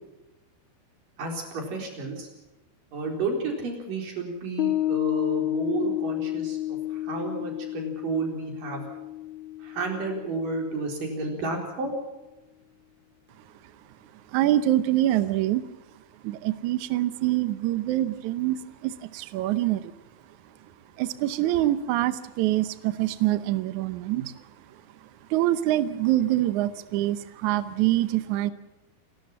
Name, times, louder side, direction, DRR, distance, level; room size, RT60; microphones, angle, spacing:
voice 1, 1.2-2.3 2.9-8.8 9.6-11.9, right 3 dB, 60° right, 2 dB, 5.7 m, -31 dB
Piano, 4.6-11.3, left 14 dB, 85° left, 1.7 m, -31 dB
voice 2, 14.3-15.6 16.2-18.6 18.8-19.9 21.0-24.3 25.3-28.5, right 14 dB, 80° right, 13 dB, 1.7 m, -25 dB
29.5 x 13.0 x 7.4 m, 1.0 s
omnidirectional pair, 4.5 m